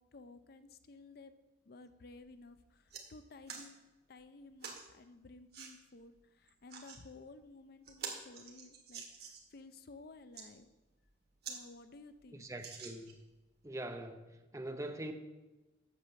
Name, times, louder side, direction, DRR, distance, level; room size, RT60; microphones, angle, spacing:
voice 1, 0.0-1.3 1.7-2.8 3.1-3.8 4.1-9.0 9.5-10.7 11.5-12.5, left 3 dB, 55° left, 11 dB, 0.5 m, -54 dB
sound 1, 2.2-2.3 2.7-3.0 3.5-3.7 4.6-4.8 5.5-5.7 6.5-7.0 7.5-7.6 7.9-9.5 10.1-10.5 11.0-11.1 11.4-11.6 11.9-12.0 12.6-13.3 13.9-14.0, right 6 dB, 55° right, 1.7 m, -47 dB
voice 2, 12.3-13.1 13.6-15.1, right 1 dB, 15° right, 6 dB, 0.7 m, -43 dB
8.3 x 7.3 x 6.9 m, 1.1 s
head